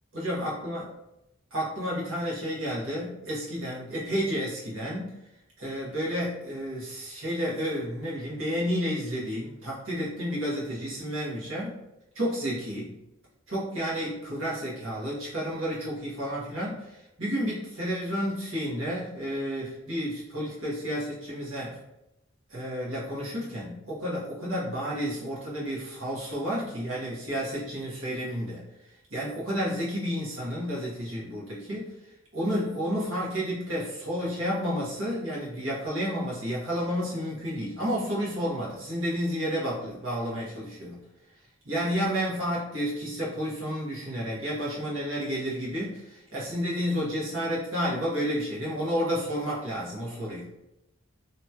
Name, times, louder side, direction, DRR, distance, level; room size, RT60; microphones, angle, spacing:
voice 1, 0.1-0.8 1.5-5.1 5.6-11.8 12.1-12.9 13.5-16.9 17.2-21.8 22.5-28.6 29.1-31.9 32.3-41.0 41.6-50.4, equal, 90° right, -6 dB, 1.2 m, -31 dB
2.9 x 2.8 x 2.3 m, 0.90 s
head